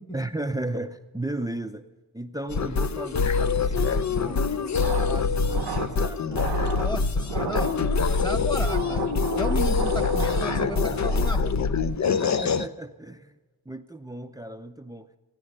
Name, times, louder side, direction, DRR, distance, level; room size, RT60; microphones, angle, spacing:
voice 1, 0.1-1.9 2.1-6.4 12.1-13.4 13.7-15.1, right 1 dB, 10° right, 0.6 m, -35 dB
sound 1, 2.5-12.7, left 5 dB, 40° left, 0.6 m, -25 dB
sound 2, 4.7-11.6, right 8 dB, 70° right, 0.9 m, -34 dB
voice 2, 6.5-9.0 9.4-11.6, equal, 10° left, 1.3 m, -34 dB
16.0 x 9.8 x 6.5 m
cardioid pair, 60°, 43 cm